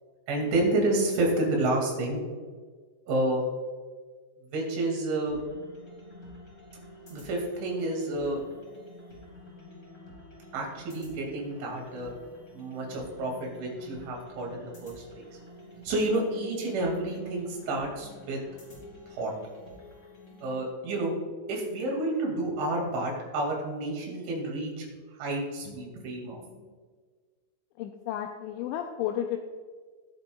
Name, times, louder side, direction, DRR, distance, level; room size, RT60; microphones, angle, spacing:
voice 1, 0.3-2.2 3.1-3.4 4.5-5.4 7.1-8.4 10.5-12.1 12.5-15.3 15.8-18.4 19.1-19.3 20.4-21.1 21.5-24.9 25.2-26.4, right 2 dB, 70° right, -1 dB, 4.5 m, -29 dB
sound 1, 5.3-20.6, left 1 dB, 20° left, 2.8 m, -50 dB
voice 2, 27.8-29.4, left 11 dB, 85° left, 4 dB, 2.8 m, -32 dB
20.0 x 7.0 x 2.3 m, 1.5 s
omnidirectional pair, 5.7 m